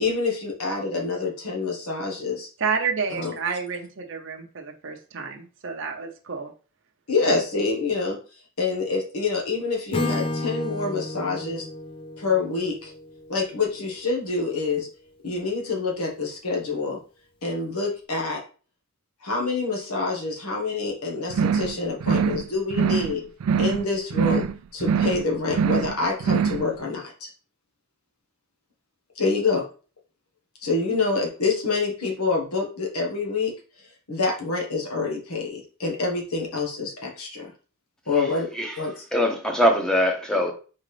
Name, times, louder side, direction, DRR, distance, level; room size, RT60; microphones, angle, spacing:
voice 1, 0.0-2.5 3.2-3.6 7.1-8.2 8.6-11.6 12.2-12.9 13.3-14.9 15.2-17.0 17.4-18.4 19.2-23.2 23.6-24.4 24.7-27.3 29.2-29.7 30.6-33.5 34.1-37.5 38.1-38.5 38.8-39.0, left 3 dB, 85° left, 1.3 m, -26 dB
voice 2, 2.6-6.5, right 5 dB, 55° right, 0.7 m, -30 dB
Acoustic guitar / Strum, 9.9-13.9, left 2 dB, 25° left, 0.3 m, -32 dB
sound 1, 21.3-21.7 22.0-22.4 22.7-23.1 23.4-23.8 24.1-24.5 24.8-25.2 25.5-25.9 26.2-26.6, right 7 dB, 85° right, 0.3 m, -23 dB
voice 3, 39.1-40.5, equal, 5° left, 0.8 m, -22 dB
4.2 x 3.8 x 3.3 m
head